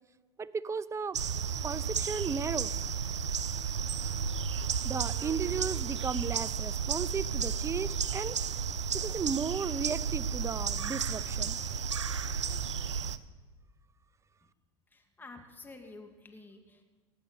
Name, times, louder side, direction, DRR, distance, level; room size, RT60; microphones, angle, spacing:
voice 1, 0.4-1.2 1.6-2.7 4.8-8.4 8.9-11.6, right 5 dB, 20° right, 18 dB, 0.7 m, -35 dB
sound 1, 1.1-13.2, right 7 dB, 85° right, 0.6 m, -33 dB
voice 2, 14.9-16.8, left 3 dB, 15° left, 4 dB, 2.2 m, -50 dB
18.5 x 9.3 x 6.7 m, 1.3 s
figure-of-eight pair, 75°, 15 cm